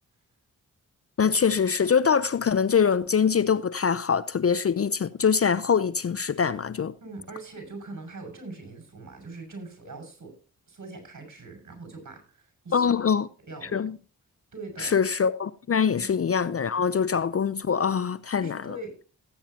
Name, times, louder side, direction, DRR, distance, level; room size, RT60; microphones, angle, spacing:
voice 1, 1.2-6.9 12.7-13.3 13.6-14.0 14.8-18.8, left 6 dB, 40° left, 0.6 m, -24 dB
voice 2, 7.0-10.3 10.7-12.9 13.5-13.8 14.5-15.0 16.0-16.1 18.4-19.1, right 2 dB, 50° right, 6.0 m, -42 dB
18.0 x 9.0 x 2.8 m
supercardioid pair, 40°, 38 cm